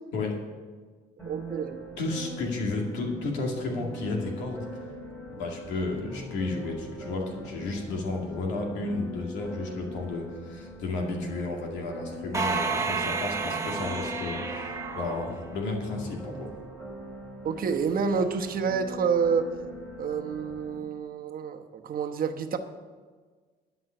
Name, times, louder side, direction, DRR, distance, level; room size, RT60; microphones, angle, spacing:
sound 1, 1.2-20.8, equal, 15° left, 3.8 m, -42 dB
voice 1, 1.2-1.8 17.4-19.5 20.0-22.6, right 6 dB, 55° right, 5 dB, 1.1 m, -28 dB
voice 2, 2.0-4.7 5.3-16.5, left 3 dB, 90° left, 1 dB, 2.3 m, -32 dB
sound 2, 12.3-16.0, right 4 dB, 15° right, 1.2 m, -31 dB
11.5 x 5.5 x 8.7 m, 1.5 s
cardioid pair, 90°, 18 cm